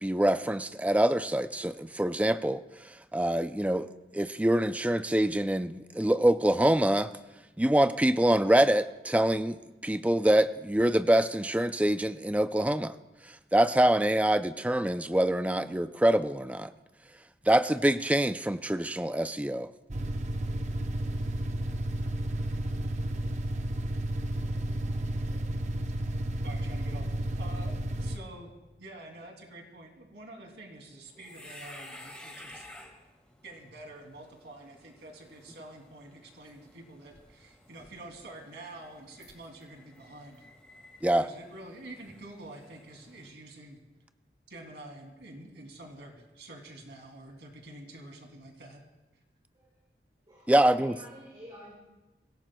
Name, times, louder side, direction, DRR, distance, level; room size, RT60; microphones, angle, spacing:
voice 1, 0.0-3.9 4.1-7.1 7.6-9.6 9.8-12.9 13.5-16.7 17.5-19.7 41.0-41.3 50.5-50.9, right 1 dB, 10° right, 11 dB, 0.4 m, -25 dB
sound 1, 19.9-28.2, right 1 dB, 40° right, 0.7 m, -32 dB
voice 2, 24.4-25.5 49.5-49.7 50.3-51.7, equal, 25° right, -8 dB, 5.8 m, -51 dB
voice 3, 26.4-27.1 27.4-27.7 28.0-28.5 28.8-32.9 33.4-40.5 41.2-43.8 44.5-48.8, right 1 dB, 90° right, 2 dB, 2.7 m, -47 dB
sound 2, 31.1-43.3, left 1 dB, 5° left, 1.7 m, -53 dB
24.5 x 16.5 x 2.3 m, 1.0 s
head